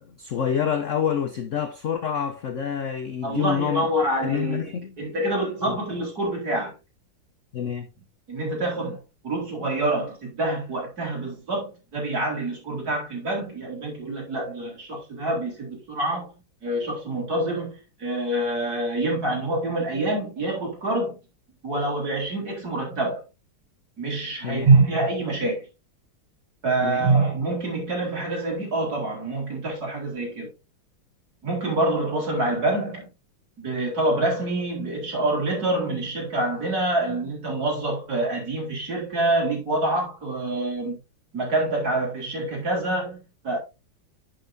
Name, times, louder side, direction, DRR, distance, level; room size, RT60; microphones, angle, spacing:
voice 1, 0.0-3.9 4.2-5.0 5.6-5.8 7.5-7.9 24.4-24.7 26.8-27.0, left 8 dB, 65° left, 0.7 m, -27 dB
voice 2, 3.2-4.6 5.0-6.7 8.3-16.3 16.6-21.2 21.6-23.2 24.0-25.7 26.6-30.5 31.4-33.1 33.6-41.0 41.3-43.6, right 2 dB, 45° right, 3.9 m, -26 dB
10.5 x 5.7 x 2.6 m
omnidirectional pair, 2.3 m